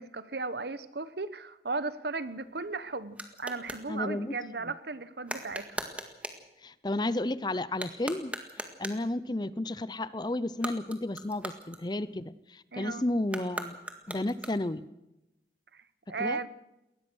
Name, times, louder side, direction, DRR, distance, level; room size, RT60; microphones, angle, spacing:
voice 1, 0.0-5.8 12.7-13.0 15.7-16.5, right 3 dB, 65° right, 14 dB, 1.1 m, -36 dB
sound 1, 2.1-3.9 5.2-6.5 7.7-9.1 10.5-12.3 13.2-14.9, right 1 dB, 10° right, 1.8 m, -40 dB
voice 2, 3.9-4.3 6.6-8.3 8.8-14.9 16.2-16.4, left 1 dB, 25° left, 16 dB, 0.6 m, -32 dB
22.0 x 19.0 x 6.3 m, 0.93 s
head